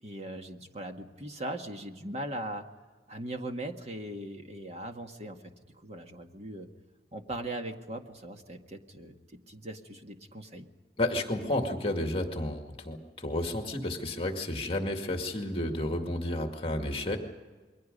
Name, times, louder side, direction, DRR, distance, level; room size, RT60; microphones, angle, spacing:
voice 1, 0.0-2.7 3.1-6.7 7.1-10.7, right 1 dB, 35° right, 4 dB, 1.8 m, -40 dB
voice 2, 11.0-12.6 12.9-17.2, left 1 dB, 30° left, 4 dB, 2.1 m, -31 dB
28.5 x 22.5 x 5.4 m, 1.3 s
head